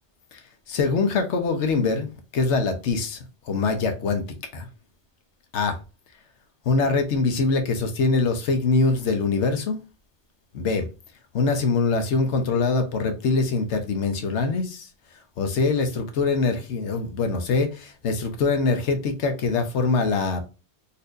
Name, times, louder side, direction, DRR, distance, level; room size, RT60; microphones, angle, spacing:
voice 1, 0.7-3.2 3.5-4.2 4.5-4.7 5.5-5.8 6.7-9.8 10.5-10.9 11.3-14.9 15.4-20.5, left 4 dB, 85° left, 1.0 m, -23 dB
4.1 x 2.6 x 2.5 m
omnidirectional pair, 1.2 m